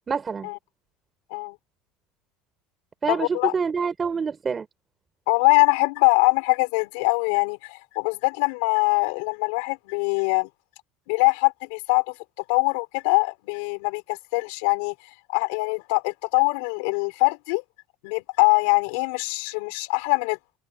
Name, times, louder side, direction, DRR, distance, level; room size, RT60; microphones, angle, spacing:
voice 1, 0.1-0.5 3.0-4.7, right 5 dB, 15° right, 4.2 m, -26 dB
voice 2, 3.1-3.5 5.3-10.5 11.1-12.1 12.5-14.9 15.3-17.6 18.0-20.4, left 30 dB, 70° left, 4.9 m, -23 dB
cardioid pair, 170°, 0 cm